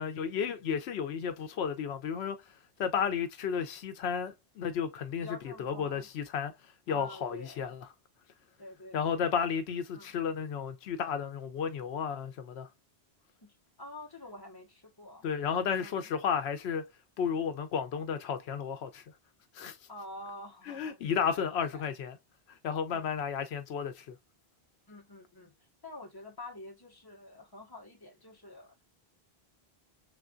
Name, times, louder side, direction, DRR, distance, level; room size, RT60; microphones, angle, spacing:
voice 1, 0.0-2.4 2.8-6.5 6.9-7.9 8.9-12.7 15.2-16.9 17.2-19.0 19.5-19.8 20.7-22.2 22.5-24.2, left 7 dB, 85° left, 0.9 m, -33 dB
voice 2, 5.2-6.1 6.9-7.7 8.6-9.2 9.9-10.1 13.4-16.1 19.9-21.9 22.9-23.1 24.9-25.5 25.8-28.8, left 2 dB, 20° left, 1.3 m, -48 dB
3.7 x 3.4 x 2.4 m
omnidirectional pair, 1.1 m